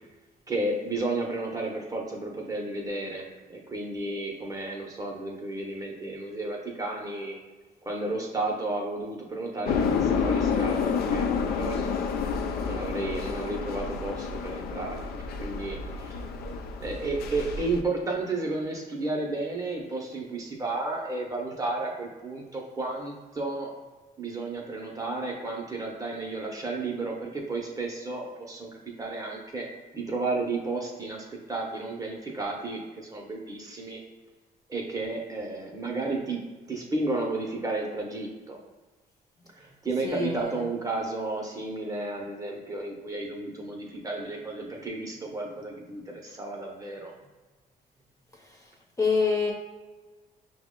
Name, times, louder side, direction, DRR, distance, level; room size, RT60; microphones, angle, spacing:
voice 1, 0.5-7.4 7.8-11.9 12.6-15.1 15.4-16.2 16.8-23.7 24.2-29.7 29.9-34.0 34.7-38.6 39.5-47.1, right 2 dB, 20° right, 0 dB, 0.6 m, -32 dB
sound 1, 9.7-17.8, left 5 dB, 85° left, 0.4 m, -29 dB
voice 2, 40.0-40.6 49.0-49.5, left 4 dB, 20° left, -1 dB, 0.7 m, -25 dB
5.6 x 2.1 x 3.6 m, 1.3 s
cardioid pair, 145°, 16 cm